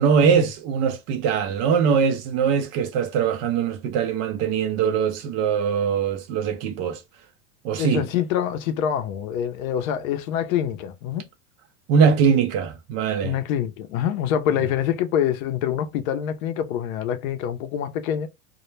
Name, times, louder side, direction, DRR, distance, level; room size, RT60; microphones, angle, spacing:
voice 1, 0.0-7.0 7.6-8.0 11.9-13.4, right 7 dB, 35° right, 0.4 m, -22 dB
voice 2, 7.8-11.3 13.2-18.3, left 9 dB, 60° left, 0.6 m, -25 dB
2.2 x 2.1 x 3.1 m
supercardioid pair, 120°, 47 cm